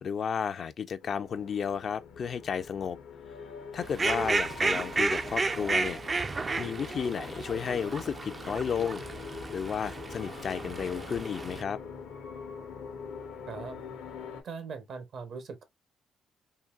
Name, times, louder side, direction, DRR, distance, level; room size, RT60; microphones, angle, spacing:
voice 1, 0.0-3.0 3.7-6.0 6.6-9.0 9.5-11.8, left 7 dB, 55° left, 0.4 m, -33 dB
sound 1, 1.0-14.4, left 5 dB, 90° left, 0.8 m, -44 dB
Fowl, 3.8-11.6, right 3 dB, 30° right, 0.3 m, -32 dB
voice 2, 14.4-15.6, right 5 dB, 65° right, 0.9 m, -40 dB
3.8 x 2.3 x 2.3 m
cardioid pair, 90°, 0 cm